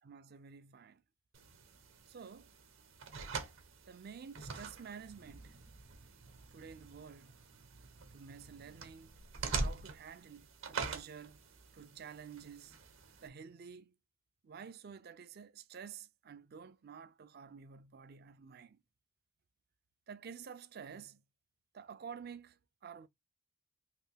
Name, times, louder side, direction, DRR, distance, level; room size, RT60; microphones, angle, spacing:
voice 1, 0.0-1.0 2.1-2.5 3.9-5.6 6.5-7.4 8.1-9.2 9.5-11.4 11.7-12.7 13.2-13.9 14.4-18.8 20.1-21.2 21.7-23.1, right 6 dB, 45° right, 0.4 m, -51 dB
sound 1, 1.3-13.3, right 4 dB, 70° right, 0.8 m, -44 dB
3.3 x 2.5 x 3.2 m
head